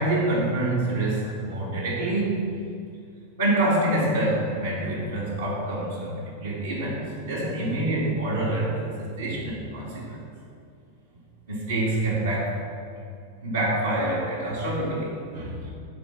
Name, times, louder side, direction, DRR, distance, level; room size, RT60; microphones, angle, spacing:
voice 1, 0.0-2.6 3.4-10.2 11.5-12.6 13.4-15.7, right 1 dB, 70° right, -6 dB, 2.6 m, -26 dB
10.0 x 5.2 x 7.4 m, 2.4 s
figure-of-eight pair, 90°, 0 cm